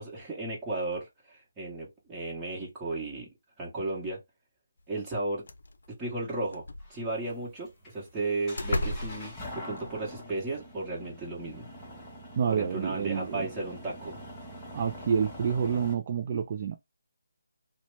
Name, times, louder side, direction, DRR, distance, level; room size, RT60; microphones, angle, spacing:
voice 1, 0.0-3.3 3.6-4.2 4.9-5.5 5.9-11.7 12.5-14.2, right 2 dB, 10° right, 1.2 m, -34 dB
sound 1, 5.1-5.2 5.5-5.9 6.5-7.3 8.1-8.2 8.6-10.1, left 1 dB, 70° left, 0.6 m, -34 dB
sound 2, 6.8-15.9, left 1 dB, 10° left, 0.9 m, -45 dB
voice 2, 12.4-13.5 14.7-16.8, right 7 dB, 35° right, 0.4 m, -28 dB
2.8 x 2.1 x 3.2 m
figure-of-eight pair, 165°, 0 cm